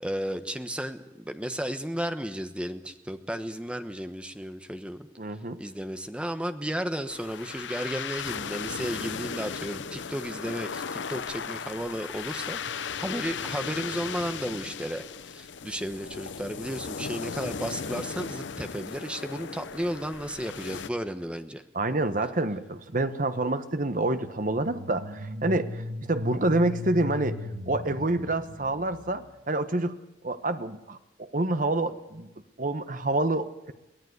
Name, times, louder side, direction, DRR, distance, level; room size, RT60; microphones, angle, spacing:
voice 1, 0.0-5.1 5.6-21.6, equal, 5° right, 8 dB, 1.1 m, -34 dB
voice 2, 5.2-5.6 21.7-25.8 26.1-27.4 27.7-29.9 30.2-31.0 31.3-32.3 32.6-33.7, right 2 dB, 45° right, 10 dB, 1.2 m, -27 dB
sound 1, 7.1-20.9, left 6 dB, 75° left, 0.7 m, -36 dB
sound 2, 24.5-29.3, left 2 dB, 65° right, 1.3 m, -38 dB
23.0 x 16.5 x 8.2 m, 0.98 s
head